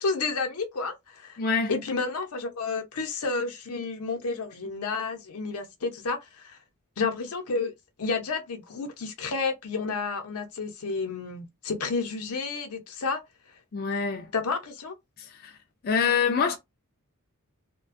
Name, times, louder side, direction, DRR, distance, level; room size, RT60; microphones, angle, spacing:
voice 1, 0.0-1.4 1.7-6.6 7.0-7.7 8.0-13.2 14.3-14.9, left 4 dB, 85° left, 0.7 m, -31 dB
voice 2, 1.4-1.7 13.7-14.3 15.2-15.6 15.8-16.6, left 6 dB, 45° left, 0.3 m, -26 dB
2.4 x 2.2 x 2.5 m
head